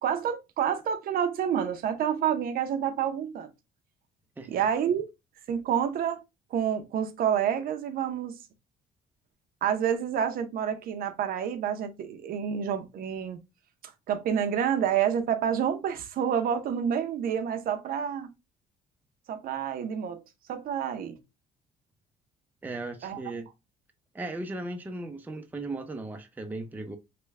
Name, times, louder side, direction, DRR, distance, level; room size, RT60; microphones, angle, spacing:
voice 1, 0.0-3.5 4.5-5.1 5.5-6.2 6.5-8.4 9.6-13.4 14.1-18.3 19.3-20.2 20.5-21.2 23.0-23.2, right 8 dB, 60° right, 0.6 m, -28 dB
voice 2, 22.6-23.5 24.1-27.0, right 2 dB, 10° right, 0.5 m, -37 dB
3.2 x 2.2 x 3.3 m
cardioid pair, 110°, 17 cm